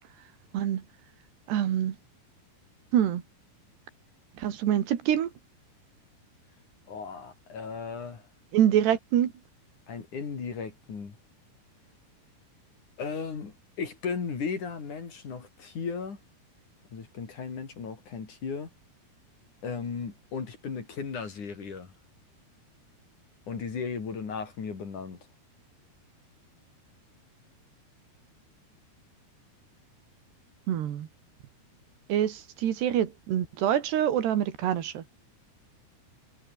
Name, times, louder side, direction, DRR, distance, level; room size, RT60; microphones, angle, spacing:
voice 1, 1.5-2.0 2.9-3.2 4.4-5.3 8.5-9.3 30.7-31.1 32.1-35.0, right 10 dB, 80° right, 4.2 m, -25 dB
voice 2, 6.9-8.2 9.9-11.2 13.0-16.2 16.9-18.7 19.6-21.9 23.5-25.2, left 5 dB, 50° left, 5.1 m, -36 dB
omnidirectional pair, 4.8 m